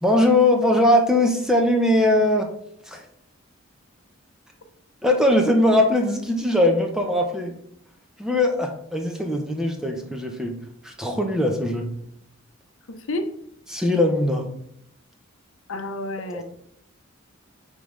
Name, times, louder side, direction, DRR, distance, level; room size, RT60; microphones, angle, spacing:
voice 1, 0.0-2.5 2.9-3.0 5.0-7.5 8.2-10.6 10.8-11.9 13.7-14.4, left 1 dB, 5° right, 2 dB, 0.8 m, -20 dB
voice 2, 12.9-13.3 15.7-16.4, left 2 dB, 70° left, 7 dB, 0.7 m, -30 dB
9.1 x 3.7 x 3.2 m, 0.68 s
head